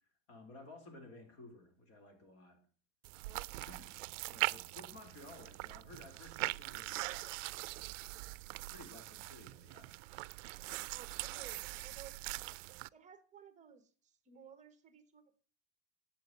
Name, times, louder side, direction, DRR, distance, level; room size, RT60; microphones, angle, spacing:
voice 1, 0.3-2.6 3.7-3.9 4.2-7.3 8.2-8.4 8.7-9.9, left 2 dB, 40° left, 5 dB, 4.2 m, -55 dB
sound 1, 3.0-12.9, right 21 dB, 80° right, 0.5 m, -42 dB
voice 2, 3.2-3.7 10.9-12.2 12.9-15.4, right 8 dB, 20° right, 11 dB, 1.3 m, -57 dB
12.0 x 8.5 x 7.8 m, 0.42 s
supercardioid pair, 160°, 37 cm